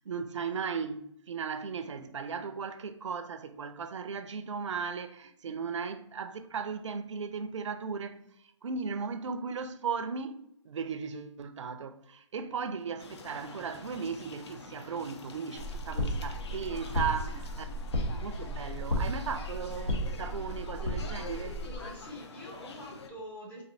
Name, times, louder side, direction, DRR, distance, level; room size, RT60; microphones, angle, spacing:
voice 1, 0.1-8.2 8.6-17.7 18.1-21.6, right 6 dB, 75° right, 0.5 m, -36 dB
sound 1, 13.0-23.1, left 4 dB, 60° left, 0.6 m, -47 dB
sound 2, 15.5-21.8, equal, 75° left, 1.2 m, -34 dB
voice 2, 16.7-17.0 21.6-23.6, equal, 10° left, 0.6 m, -46 dB
4.2 x 2.5 x 2.6 m
hypercardioid pair, 145°, 16 cm